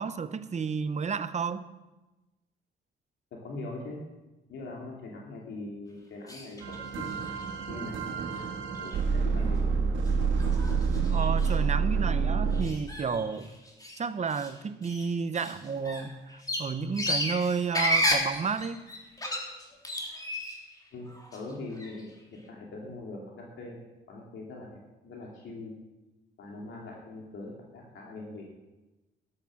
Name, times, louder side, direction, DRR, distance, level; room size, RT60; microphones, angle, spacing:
voice 1, 0.0-1.7 11.1-13.5 14.0-18.8, right 5 dB, 35° right, 12 dB, 0.9 m, -31 dB
voice 2, 3.3-4.0 4.5-7.1 7.7-8.1 8.4-9.7 15.3-15.5 20.9-25.7 26.4-28.6, left 2 dB, 70° left, -2 dB, 2.6 m, -42 dB
sound 1, 6.3-6.8 7.1-7.7 8.3-8.4 8.7-9.0 9.4-9.5 10.1-10.2 10.4-11.7 12.5-14.0 14.3-14.5 14.8-20.7 21.1-22.0, left 1 dB, 20° left, 3.4 m, -33 dB
sound 2, 6.6-12.6, right 5 dB, 75° right, 2.0 m, -28 dB
13.0 x 11.0 x 6.3 m, 1.1 s
cardioid pair, 90°, 20 cm